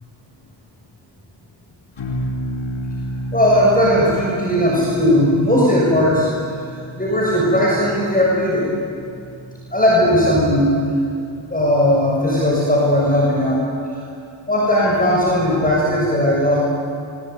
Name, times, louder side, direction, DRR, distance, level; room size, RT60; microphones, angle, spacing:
sound 1, 2.0-12.5, right 1 dB, 70° left, 4.3 m, -33 dB
voice 1, 3.3-6.3 6.6-8.7 9.7-10.8 11.5-13.6 14.5-16.6, equal, 20° left, -4 dB, 7.3 m, -17 dB
23.0 x 23.0 x 9.6 m, 2.5 s
cardioid pair, 65°, 47 cm